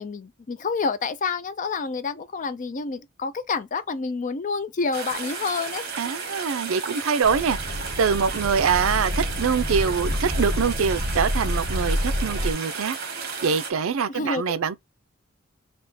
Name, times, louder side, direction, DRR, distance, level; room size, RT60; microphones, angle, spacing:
voice 1, 0.0-5.9 14.1-14.4, left 4 dB, 40° left, 0.4 m, -28 dB
sound 1, 4.9-13.7, right 5 dB, 50° right, 1.4 m, -34 dB
voice 2, 6.0-14.8, right 6 dB, 70° right, 0.4 m, -24 dB
sound 2, 7.2-12.5, equal, 25° right, 1.3 m, -28 dB
3.5 x 2.8 x 4.0 m
head